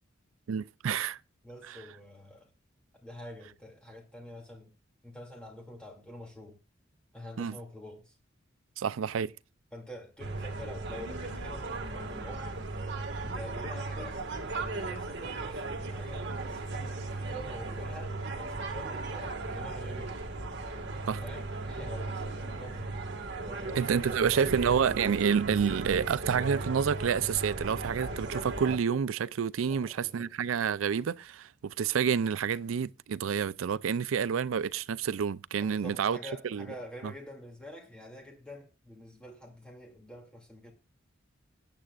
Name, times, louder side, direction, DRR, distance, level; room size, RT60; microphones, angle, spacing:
voice 1, 0.5-1.2 1.6-1.8 7.4-7.6 8.8-9.3 21.1-21.2 23.8-36.2 36.5-36.7 37.0-37.1, right 7 dB, 85° right, 0.4 m, -29 dB
voice 2, 1.4-2.5 3.0-4.7 5.0-6.6 7.1-8.1 9.7-12.5 13.2-20.2 21.2-23.0 23.4-24.7 29.7-30.3 35.6-40.7, left 1 dB, 5° left, 2.4 m, -47 dB
sound 1, 10.2-28.8, right 3 dB, 60° right, 1.8 m, -36 dB
18.0 x 8.9 x 2.4 m
head